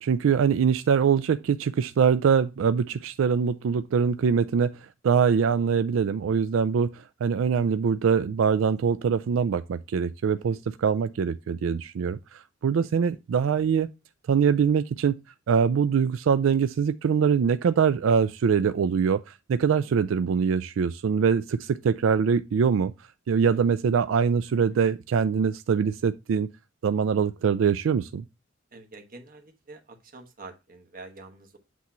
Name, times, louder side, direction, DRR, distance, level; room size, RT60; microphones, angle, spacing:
voice 1, 0.0-4.8 5.0-13.9 14.3-15.2 15.5-22.9 23.3-26.5 26.8-28.2, right 6 dB, 85° right, 0.4 m, -23 dB
voice 2, 28.7-31.6, right 3 dB, 45° right, 1.2 m, -47 dB
8.2 x 3.1 x 5.6 m
head